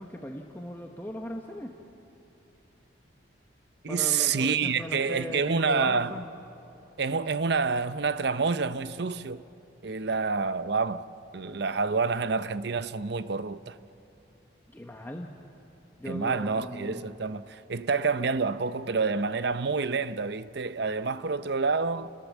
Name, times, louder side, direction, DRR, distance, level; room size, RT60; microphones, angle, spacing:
voice 1, 0.0-1.8 3.9-6.2 14.7-15.3 16.0-17.1, left 1 dB, 10° left, 1.1 m, -38 dB
voice 2, 3.8-6.1 7.0-9.4 9.8-11.1 11.3-13.8 16.1-22.1, right 4 dB, 60° right, 0.7 m, -28 dB
30.0 x 21.5 x 7.3 m
head